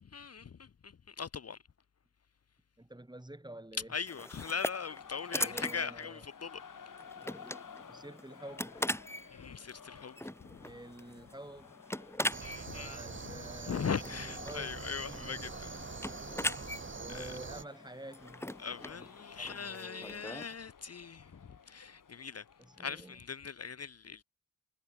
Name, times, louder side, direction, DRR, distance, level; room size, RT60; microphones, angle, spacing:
voice 1, 0.1-1.6 3.9-6.6 9.3-10.6 12.4-15.7 16.3-16.4 17.1-17.4 18.6-21.3 21.7-22.4 22.8-24.2, left 6 dB, 45° left, 1.0 m, -40 dB
voice 2, 2.8-3.9 5.4-6.2 7.3-7.4 7.9-8.7 10.6-11.8 12.7-14.8 15.1-15.4 15.7-16.0 16.9-18.5 18.9-19.1 19.3-20.3 22.6-23.2, right 1 dB, 10° right, 4.9 m, -49 dB
sound 1, 4.1-20.6, left 1 dB, 5° left, 4.7 m, -41 dB
sound 2, 4.7-23.2, left 6 dB, 65° left, 7.3 m, -54 dB
sound 3, 12.3-17.6, right 4 dB, 35° right, 2.0 m, -44 dB
cardioid pair, 60°, 34 cm